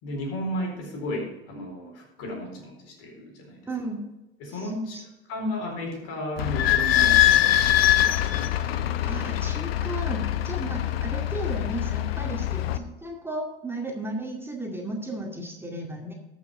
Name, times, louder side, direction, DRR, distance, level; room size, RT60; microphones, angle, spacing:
voice 1, 0.0-3.6 4.4-5.0 5.3-8.5, equal, 55° left, 1 dB, 4.2 m, -34 dB
voice 2, 3.7-4.0 4.5-5.0 5.5-5.6 9.0-16.1, right 2 dB, 10° right, 0 dB, 2.1 m, -35 dB
Idling / Squeak, 6.4-12.8, left 12 dB, 80° left, 0.8 m, -23 dB
13.0 x 6.2 x 4.9 m, 1.0 s
hypercardioid pair, 85°, 30 cm